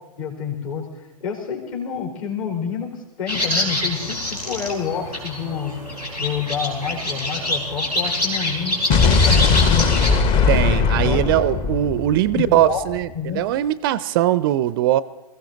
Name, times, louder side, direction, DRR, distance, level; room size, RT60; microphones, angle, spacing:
voice 1, 0.2-0.9 1.2-2.9 3.2-5.8 6.2-9.8 11.0-11.2 12.3-12.8 13.1-13.4, left 7 dB, 55° left, 2 dB, 4.0 m, -28 dB
sound 1, 3.3-10.1, left 1 dB, 90° left, 3.9 m, -26 dB
Explosion, 8.9-13.0, left 5 dB, 25° left, 0.8 m, -19 dB
voice 2, 10.5-15.0, right 13 dB, 35° right, 18 dB, 0.4 m, -20 dB
21.0 x 15.0 x 3.9 m, 0.99 s
figure-of-eight pair, 120°, 21 cm